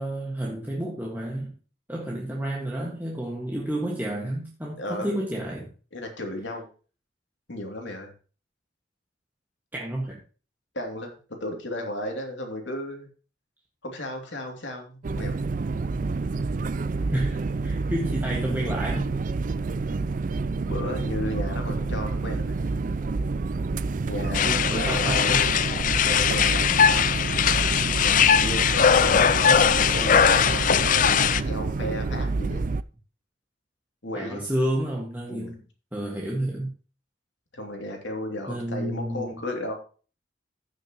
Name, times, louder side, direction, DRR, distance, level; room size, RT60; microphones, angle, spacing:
voice 1, 0.0-1.5 1.9-5.7 9.7-10.2 17.1-19.2 24.4-25.5 29.0-29.3 34.1-35.6 35.9-36.7 38.5-39.3, right 1 dB, 10° right, -3 dB, 1.7 m, -30 dB
voice 2, 4.8-5.2 5.9-6.7 7.5-8.1 10.7-11.1 11.4-13.1 13.8-15.4 20.7-22.6 24.1-25.5 26.1-27.1 28.0-32.7 34.0-34.5 35.3-35.5 37.5-39.7, left 1 dB, 75° left, 2 dB, 2.8 m, -34 dB
sound 1, 15.0-32.8, right 3 dB, 45° right, 0.4 m, -28 dB
sound 2, 24.3-31.4, left 8 dB, 45° left, 0.4 m, -20 dB
15.5 x 6.6 x 3.0 m, 0.37 s
head